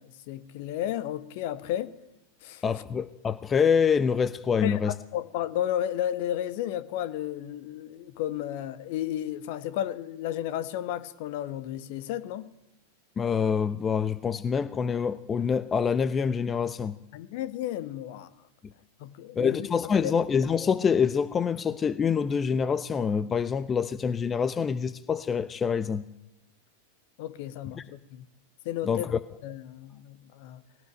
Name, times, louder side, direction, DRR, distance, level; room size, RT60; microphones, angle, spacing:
voice 1, 0.0-1.9 2.4-2.6 4.6-12.5 17.1-18.3 19.0-19.7 20.0-20.1 27.2-28.2 28.6-29.1 29.4-30.6, left 12 dB, 50° left, 14 dB, 1.4 m, -33 dB
voice 2, 2.6-4.9 13.2-17.0 19.4-26.1 27.7-27.8 28.8-29.2, left 6 dB, 20° left, 15 dB, 0.9 m, -26 dB
20.5 x 18.0 x 9.1 m, 0.93 s
figure-of-eight pair, 90°, 0 cm